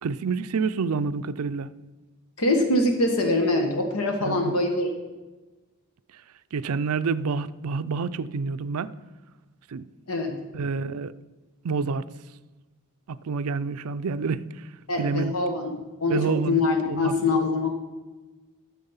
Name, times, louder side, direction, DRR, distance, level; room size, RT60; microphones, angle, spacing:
voice 1, 0.0-1.7 4.2-4.6 6.5-9.0 9.7-9.9 10.5-11.1 11.6-12.0 13.1-14.6 15.0-15.3 16.1-16.6 16.9-17.2, right 5 dB, 70° right, 14 dB, 0.4 m, -28 dB
voice 2, 2.4-4.9 10.1-10.4 14.9-17.7, left 2 dB, 70° left, 4 dB, 1.2 m, -24 dB
12.5 x 7.3 x 5.6 m, 1.2 s
head